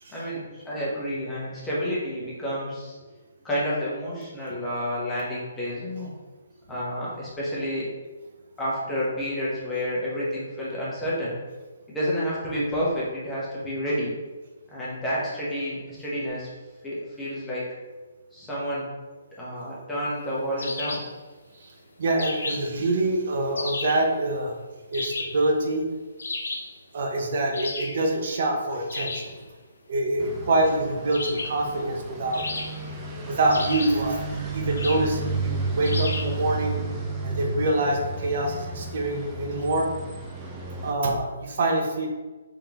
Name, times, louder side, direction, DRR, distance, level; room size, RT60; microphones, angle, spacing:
voice 1, 0.1-3.0 3.4-6.1 6.7-7.9 8.6-11.4 11.9-14.1 14.7-16.5 16.8-17.7 18.3-18.9 19.4-21.1, equal, 10° left, -8 dB, 1.0 m, -29 dB
sound 1, 20.6-21.2 22.2-22.8 23.6-24.1 24.9-25.5 26.2-26.7 27.5-28.0 28.9-29.3 31.1-31.6 32.3-33.0 33.5-34.1 34.8-35.1 35.8-36.4, left 3 dB, 80° left, 0.7 m, -33 dB
voice 2, 21.5-24.6 24.9-25.9 26.9-29.4 29.9-32.5 33.1-36.8 37.2-39.9 40.8-42.1, right 2 dB, 55° right, 2 dB, 0.7 m, -25 dB
sound 2, 30.2-40.9, right 3 dB, 15° right, 0.5 m, -32 dB
3.6 x 3.4 x 2.9 m, 1.2 s
hypercardioid pair, 155°, 0 cm